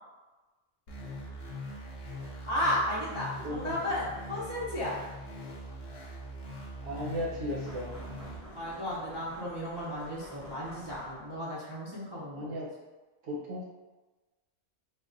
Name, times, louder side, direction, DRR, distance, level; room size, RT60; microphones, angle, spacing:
sound 1, 0.9-8.4, equal, 60° left, 0.8 m, -42 dB
voice 1, 2.5-5.0 8.5-12.5, left 1 dB, 35° right, -10 dB, 0.4 m, -34 dB
voice 2, 3.4-3.8 6.8-7.9 12.3-12.7 13.2-13.6, equal, 75° right, -4 dB, 1.1 m, -35 dB
sound 2, 7.6-11.5, equal, 15° left, 0.7 m, -49 dB
3.8 x 2.1 x 2.5 m, 1.2 s
omnidirectional pair, 1.2 m